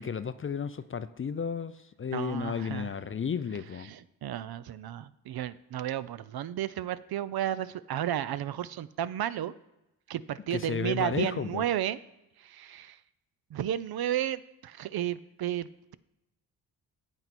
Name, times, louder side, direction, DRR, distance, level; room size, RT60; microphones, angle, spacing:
voice 1, 0.0-3.9 10.5-11.7, left 6 dB, 30° left, 13 dB, 0.5 m, -33 dB
voice 2, 2.1-2.9 3.8-9.5 10.1-12.0 12.4-13.0 13.5-15.9, right 11 dB, 55° right, 16 dB, 0.5 m, -33 dB
8.7 x 8.0 x 4.2 m, 0.93 s
supercardioid pair, 50°, 45 cm